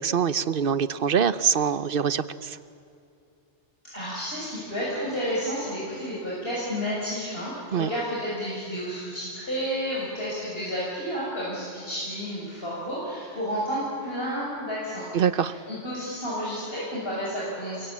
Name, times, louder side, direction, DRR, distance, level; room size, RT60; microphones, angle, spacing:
voice 1, 0.0-2.6 7.7-7.9 15.1-15.5, right 7 dB, 50° right, 14 dB, 1.0 m, -24 dB
voice 2, 3.8-17.9, equal, 55° left, -7 dB, 7.1 m, -31 dB
29.5 x 23.0 x 8.7 m, 2.5 s
omnidirectional pair, 1.2 m